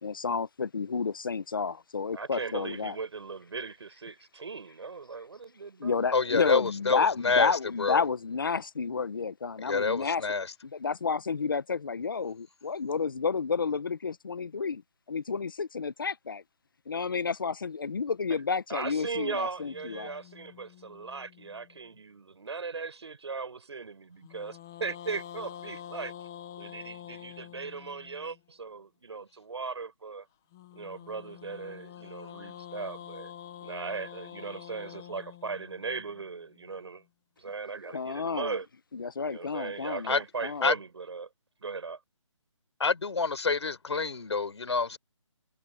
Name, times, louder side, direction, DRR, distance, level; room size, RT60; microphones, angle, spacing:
voice 1, 0.0-2.9 5.8-10.2 10.6-14.8 15.1-16.4 16.9-20.1 37.8-38.6 38.9-40.7, left 5 dB, 40° left, 0.9 m, -31 dB
voice 2, 2.1-6.3 18.7-26.1 26.6-30.3 30.7-33.3 33.6-37.0 37.4-38.7 39.2-41.3 41.6-42.0, right 4 dB, 55° right, 7.1 m, -38 dB
voice 3, 6.1-7.5 7.8-8.0 9.6-10.5 40.1-40.2 40.6-40.7 42.8-45.0, left 4 dB, 60° left, 4.7 m, -27 dB
sound 1, 19.6-22.0 24.2-28.4 30.5-36.7, left 10 dB, 5° left, 0.5 m, -47 dB
hypercardioid pair, 175°, 17 cm